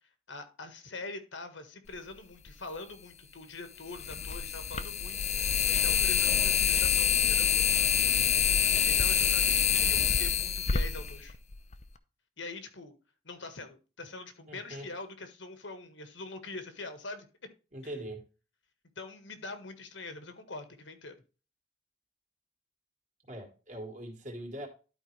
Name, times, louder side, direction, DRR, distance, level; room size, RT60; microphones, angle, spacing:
voice 1, 0.3-7.5 8.6-11.4 12.4-12.9 13.2-17.3 18.9-21.1, left 3 dB, 80° left, 1.6 m, -44 dB
sound 1, 2.5-2.6 3.9-11.8, left 8 dB, 40° left, 0.7 m, -26 dB
voice 2, 8.0-8.4 14.5-14.9 17.7-18.2 23.3-24.7, right 1 dB, 40° right, 2.2 m, -42 dB
12.0 x 4.9 x 3.3 m
head